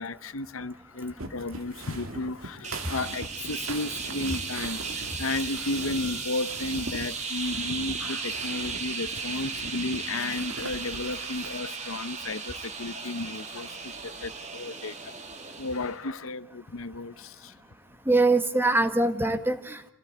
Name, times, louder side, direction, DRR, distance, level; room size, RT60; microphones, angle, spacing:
voice 1, 0.0-15.1 15.6-17.6, left 2 dB, 80° left, 14 dB, 0.9 m, -33 dB
sound 1, 1.2-11.6, right 2 dB, 85° right, 2.6 m, -41 dB
sound 2, 2.6-16.0, right 5 dB, 35° right, 2.2 m, -36 dB
voice 2, 18.1-19.9, right 2 dB, 10° right, 9 dB, 1.5 m, -23 dB
25.0 x 17.0 x 9.4 m, 0.73 s
head